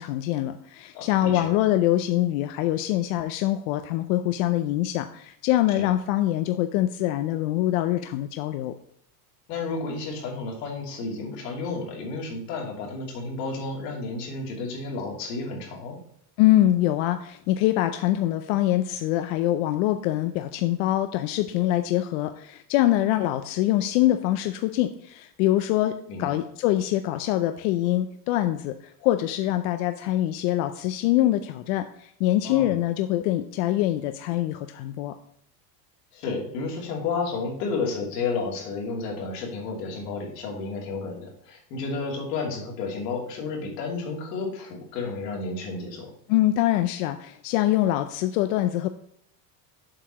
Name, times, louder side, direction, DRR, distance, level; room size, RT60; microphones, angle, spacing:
voice 1, 0.0-8.7 16.4-35.1 46.3-48.9, left 14 dB, 60° left, 9 dB, 0.6 m, -24 dB
voice 2, 0.9-1.5 5.8-5.9 9.5-16.0 26.1-26.4 32.4-32.7 36.1-46.1, left 4 dB, 80° left, 0 dB, 2.7 m, -32 dB
7.5 x 4.8 x 5.5 m, 0.69 s
cardioid pair, 165°, 47 cm